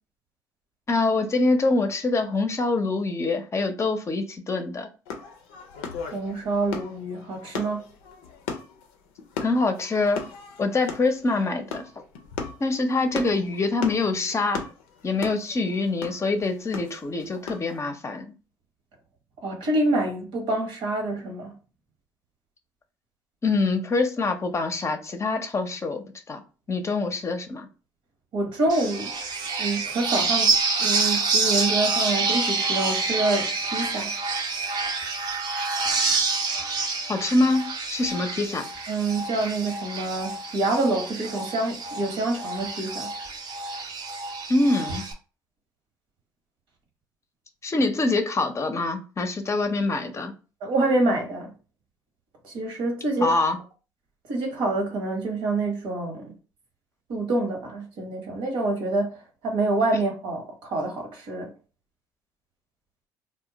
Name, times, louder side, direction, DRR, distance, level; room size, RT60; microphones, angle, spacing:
voice 1, 0.9-4.9 9.4-10.2 10.6-11.8 12.6-14.6 15.0-18.3 23.4-26.4 26.7-27.7 37.1-38.7 44.5-45.1 47.6-50.3 53.2-53.6, left 3 dB, 30° left, 0.6 m, -25 dB
sound 1, 5.0-17.8, left 5 dB, 85° left, 0.5 m, -37 dB
voice 2, 6.1-7.8 19.4-21.5 28.3-29.1 29.6-30.5 30.8-34.1 38.9-43.1 50.6-51.5 52.4-53.4 54.3-56.3 57.1-59.1 59.4-61.5, right 2 dB, 75° right, 1.0 m, -26 dB
sound 2, 28.7-45.1, right 4 dB, 50° right, 0.6 m, -27 dB
2.2 x 2.1 x 3.8 m
supercardioid pair, 65°, 9 cm